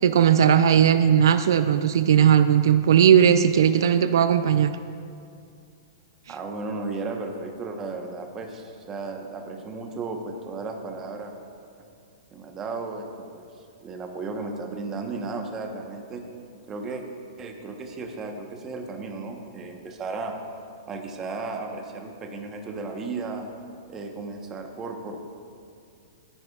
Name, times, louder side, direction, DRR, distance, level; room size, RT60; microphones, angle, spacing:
voice 1, 0.0-4.7, right 8 dB, 75° right, 11 dB, 0.4 m, -18 dB
voice 2, 6.3-11.3 12.3-13.0 13.3-16.2 16.7-17.0 17.4-20.3 20.9-23.4 23.9-25.2, right 3 dB, 20° right, 3 dB, 1.0 m, -34 dB
18.5 x 10.0 x 2.4 m, 2.4 s
hypercardioid pair, 150°, 2 cm